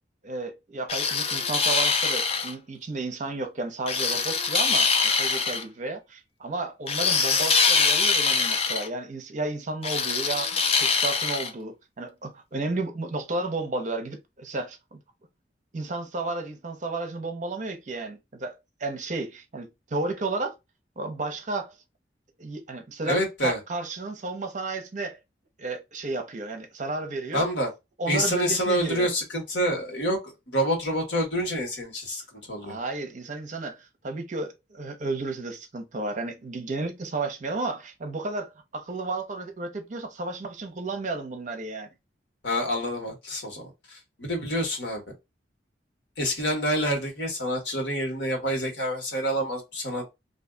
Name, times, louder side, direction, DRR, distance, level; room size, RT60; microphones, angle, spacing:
voice 1, 0.2-15.0 15.7-18.5 18.8-20.5 21.0-21.7 22.4-25.2 25.6-27.5 28.0-29.1 32.6-33.8 34.0-41.9, right 2 dB, 45° right, 0.7 m, -33 dB
sound 1, 0.9-2.5 3.9-5.6 6.9-8.9 9.8-11.5, left 5 dB, 35° left, 0.4 m, -23 dB
voice 2, 23.0-23.6 27.3-27.7 28.1-32.2 32.5-32.8 42.4-45.0 46.2-50.1, equal, 70° left, 1.4 m, -27 dB
2.6 x 2.3 x 3.7 m
head